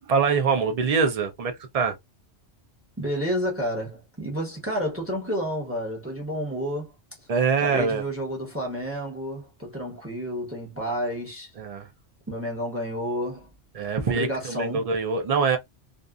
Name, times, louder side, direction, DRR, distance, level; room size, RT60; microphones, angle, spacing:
voice 1, 0.1-2.0 7.3-8.0 11.6-11.9 13.7-15.6, right 5 dB, 50° right, 0.4 m, -24 dB
voice 2, 3.0-6.9 7.6-11.5 12.3-13.5 14.1-14.9, equal, 15° right, 0.8 m, -30 dB
2.6 x 2.4 x 2.3 m
omnidirectional pair, 1.2 m